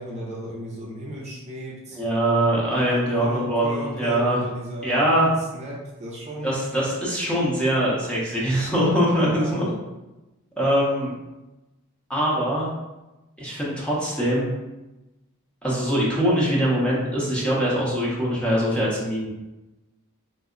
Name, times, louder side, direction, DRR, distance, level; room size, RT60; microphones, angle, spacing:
voice 1, 0.0-2.0 2.8-5.1 5.5-6.5 9.2-9.8, equal, 30° right, -4 dB, 0.6 m, -35 dB
voice 2, 1.9-4.4 4.8-5.3 6.4-9.7 10.6-11.1 12.1-12.7 13.4-14.5 15.6-19.3, equal, 5° left, -6 dB, 0.7 m, -22 dB
3.3 x 2.0 x 3.7 m, 1.0 s
head